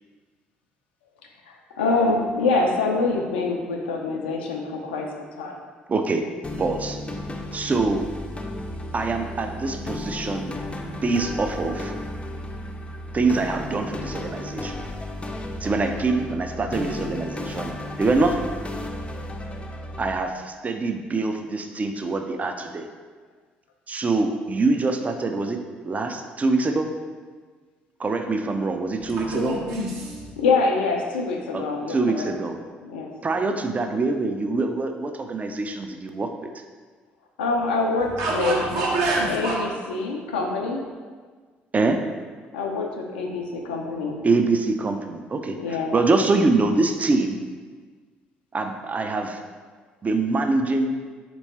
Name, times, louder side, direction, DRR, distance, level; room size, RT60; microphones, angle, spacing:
voice 1, 1.8-5.6 30.4-32.3 32.8-33.1 37.4-38.6 39.3-40.8 42.5-44.2 45.6-45.9, left 3 dB, 80° left, 2 dB, 0.5 m, -25 dB
voice 2, 5.9-6.3 6.6-7.0 7.5-8.1 8.9-10.5 10.8-11.9 13.1-14.8 15.6-18.5 20.0-22.9 23.9-26.9 28.0-29.6 31.5-32.6 33.2-36.3 38.6-38.7 41.7-42.0 44.2-47.4 48.5-49.4 50.0-50.9, right 3 dB, 30° right, 5 dB, 0.4 m, -24 dB
sound 1, 6.4-20.2, left 1 dB, 20° left, 0.5 m, -34 dB
voice 3, 29.2-30.3 38.2-39.6, right 2 dB, 65° right, -4 dB, 1.0 m, -26 dB
3.5 x 3.0 x 4.1 m, 1.5 s
figure-of-eight pair, 50°, 5 cm